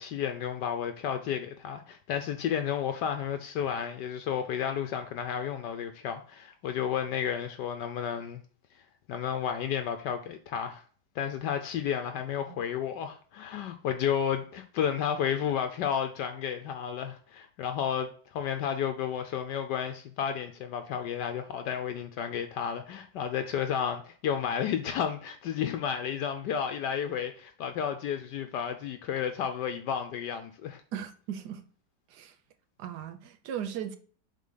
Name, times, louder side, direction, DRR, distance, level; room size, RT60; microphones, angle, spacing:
voice 1, 0.0-8.4 9.1-10.8 11.2-30.8, left 8 dB, 75° left, 1.2 m, -32 dB
voice 2, 30.9-31.6 32.1-32.3 32.8-34.0, right 9 dB, 70° right, 1.2 m, -37 dB
7.4 x 3.9 x 3.7 m
omnidirectional pair, 2.0 m